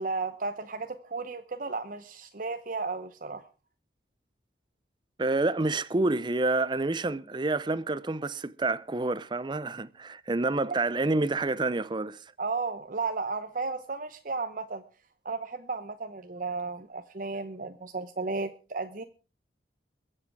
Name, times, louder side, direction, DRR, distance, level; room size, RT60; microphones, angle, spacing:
voice 1, 0.0-3.4 12.4-14.8 15.2-19.0, right 4 dB, 50° right, 0.8 m, -34 dB
voice 2, 5.2-12.2, right 2 dB, 25° right, 0.6 m, -28 dB
22.5 x 7.7 x 4.7 m
head